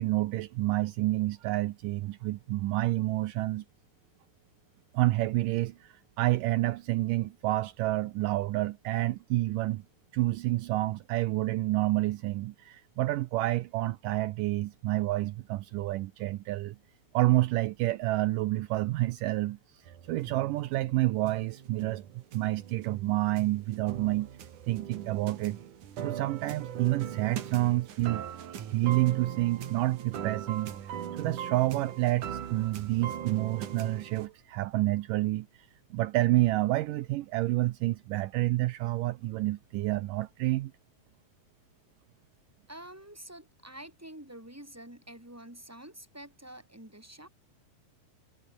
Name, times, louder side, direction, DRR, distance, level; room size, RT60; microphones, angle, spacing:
voice 1, 0.0-3.6 4.9-9.8 10.1-16.8 17.1-24.3 24.7-25.6 26.0-35.5 35.9-40.7, right 17 dB, 80° right, 1.9 m, -29 dB
sound 1, 19.9-34.3, right 9 dB, 55° right, 3.1 m, -40 dB
voice 2, 42.7-47.3, right 1 dB, 5° right, 5.5 m, -47 dB
omnidirectional pair, 4.7 m